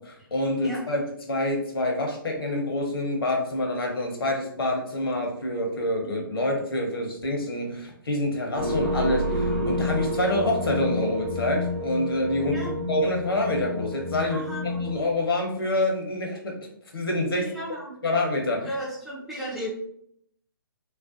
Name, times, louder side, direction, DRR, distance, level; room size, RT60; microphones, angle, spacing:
voice 1, 0.3-14.4 14.8-16.6 16.9-17.5 18.0-18.7, left 1 dB, 75° left, 1 dB, 0.7 m, -27 dB
sound 1, 8.5-15.1, left 1 dB, 85° right, 0.8 m, -29 dB
voice 2, 14.3-14.9 17.4-18.0 18.6-19.7, right 1 dB, ahead, -6 dB, 0.3 m, -34 dB
2.4 x 2.1 x 2.4 m, 0.69 s
figure-of-eight pair, 135°, 12 cm